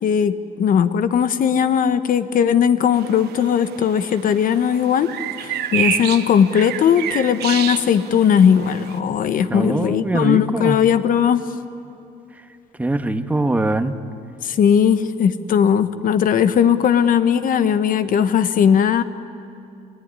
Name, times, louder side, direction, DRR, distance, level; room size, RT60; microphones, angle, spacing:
voice 1, 0.0-5.1 5.4-11.4 14.4-19.0, left 8 dB, 55° left, 11 dB, 1.2 m, -18 dB
sound 1, 2.9-9.0, right 11 dB, 70° right, 1.2 m, -29 dB
voice 2, 9.5-10.8 12.8-14.0, right 2 dB, 10° right, 7 dB, 1.3 m, -22 dB
30.0 x 17.5 x 9.8 m, 2.7 s
cardioid pair, 110°, 17 cm